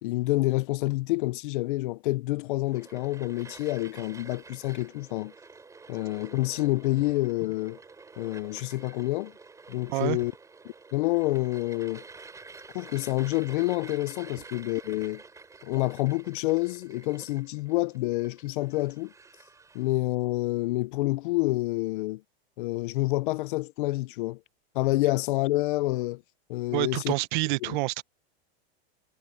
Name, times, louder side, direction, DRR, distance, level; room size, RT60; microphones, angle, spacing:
voice 1, 0.0-5.3 5.9-7.8 8.2-9.3 9.7-10.3 10.6-12.0 12.7-15.2 15.6-19.1 19.7-22.2 22.6-24.4 24.7-26.2 26.5-27.1 27.6-27.8, left 19 dB, 55° left, 0.7 m, -28 dB
sound 1, 2.6-19.9, right 4 dB, 10° right, 7.6 m, -49 dB
voice 2, 26.7-28.0, right 21 dB, 50° right, 0.9 m, -27 dB
supercardioid pair, 155°, 31 cm